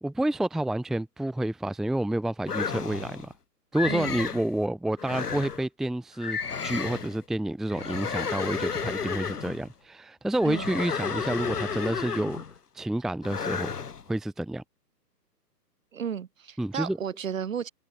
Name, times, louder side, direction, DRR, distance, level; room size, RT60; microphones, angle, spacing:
voice 1, 0.0-3.3 3.7-12.4 12.7-13.7 14.1-14.6 16.6-17.0, right 1 dB, ahead, 1.1 m, -29 dB
sound 1, 2.5-3.3 3.7-4.5 5.0-5.6 6.2-7.2 7.7-9.7 10.4-12.6 13.2-14.0, left 6 dB, 70° left, 2.2 m, -32 dB
voice 2, 15.9-17.7, right 8 dB, 55° right, 4.9 m, -33 dB
figure-of-eight pair, 135°, 49 cm